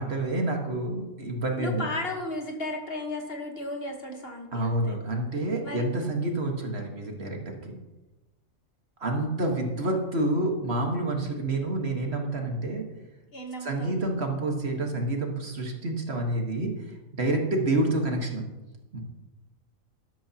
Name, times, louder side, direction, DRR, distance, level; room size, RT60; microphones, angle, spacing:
voice 1, 0.0-1.9 4.5-7.8 9.0-12.8 13.6-18.4 18.9-19.0, right 2 dB, 50° right, 2 dB, 1.7 m, -28 dB
voice 2, 1.6-4.9 5.6-5.9 13.3-13.9, left 2 dB, 45° left, 3 dB, 1.5 m, -34 dB
12.0 x 12.0 x 2.9 m, 1.1 s
omnidirectional pair, 1.4 m